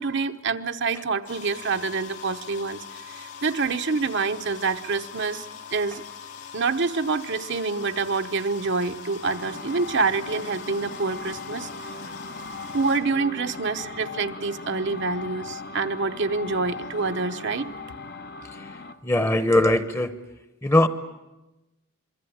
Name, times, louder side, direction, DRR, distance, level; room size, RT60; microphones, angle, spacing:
voice 1, 0.0-2.8 3.2-5.5 5.7-6.0 6.5-11.7 12.7-17.7, right 4 dB, 55° right, 7 dB, 1.0 m, -26 dB
sound 1, 1.3-13.0, left 6 dB, 90° left, 4.2 m, -42 dB
sound 2, 9.2-19.0, left 3 dB, 45° left, 0.9 m, -38 dB
voice 2, 19.0-20.1 20.6-20.9, left 1 dB, 10° left, 11 dB, 1.0 m, -21 dB
26.0 x 23.0 x 8.8 m, 1.0 s
head